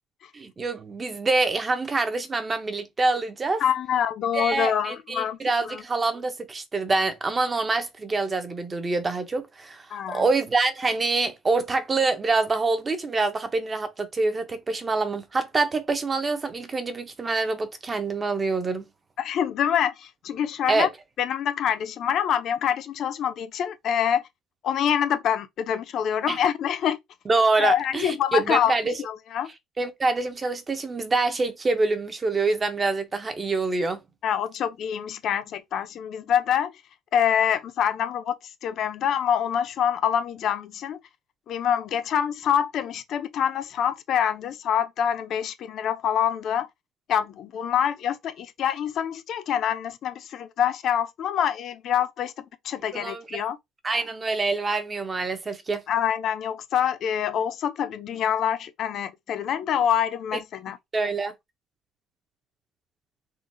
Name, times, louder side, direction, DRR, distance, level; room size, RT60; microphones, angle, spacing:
voice 1, 0.3-3.6 4.3-18.9 20.7-20.9 26.3-26.4 27.3-29.0 29.8-34.0 52.9-53.4 53.8-55.8 60.9-61.3, right 3 dB, 20° right, 0.4 m, -26 dB
voice 2, 3.6-5.4 5.7-5.8 9.9-10.2 19.2-20.9 21.2-24.2 24.6-27.0 27.6-28.7 29.0-29.5 34.2-36.7 37.1-38.4 38.6-41.0 41.5-46.7 47.1-52.3 52.6-53.6 55.9-60.8, left 9 dB, 45° left, 0.4 m, -25 dB
3.7 x 2.1 x 2.5 m
cardioid pair, 155°, 0 cm